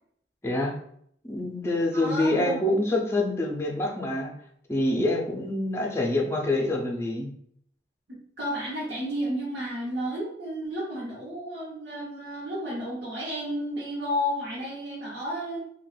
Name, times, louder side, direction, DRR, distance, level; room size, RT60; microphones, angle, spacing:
voice 1, 0.4-0.7 1.2-4.3 4.7-7.3, left 1 dB, 15° left, 0 dB, 0.4 m, -26 dB
voice 2, 1.9-2.6 8.1-15.6, equal, 70° right, -7 dB, 0.9 m, -32 dB
2.9 x 2.2 x 3.2 m, 0.69 s
head